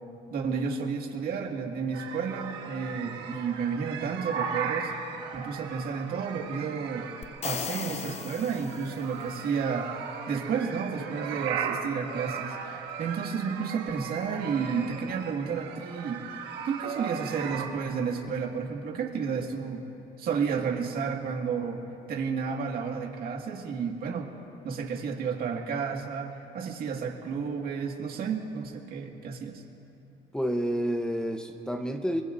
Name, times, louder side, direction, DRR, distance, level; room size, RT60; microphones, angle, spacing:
voice 1, 0.3-4.9 5.3-7.1 7.4-16.4 16.7-19.8 20.2-21.8 22.1-24.3 24.6-29.6, right 6 dB, 65° right, 2 dB, 1.9 m, -31 dB
sound 1, 1.9-17.7, right 7 dB, 80° right, 1.5 m, -37 dB
sound 2, 7.2-9.3, left 7 dB, 40° left, 0.6 m, -37 dB
voice 2, 30.3-32.2, equal, 5° left, 5 dB, 0.8 m, -29 dB
24.5 x 22.0 x 2.6 m, 3.0 s
cardioid pair, 110°, 17 cm